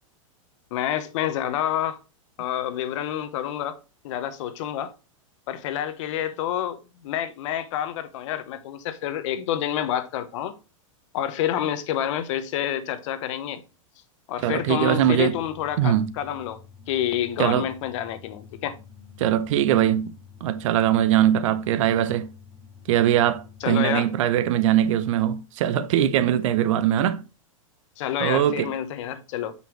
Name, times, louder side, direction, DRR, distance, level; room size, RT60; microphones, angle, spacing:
voice 1, 0.7-2.0 2.4-3.8 4.0-4.9 5.5-10.5 11.1-13.6 14.3-16.6 16.9-18.8 23.6-24.1 28.0-29.5, left 11 dB, 60° left, 1.0 m, -28 dB
sound 1, 14.4-23.7, left 6 dB, 25° left, 4.4 m, -48 dB
voice 2, 14.4-15.4 15.8-16.1 17.4-17.7 19.2-20.1 20.4-22.3 22.9-27.2 28.2-28.7, right 11 dB, 65° right, 0.7 m, -21 dB
7.6 x 5.5 x 3.2 m
supercardioid pair, 135°, 18 cm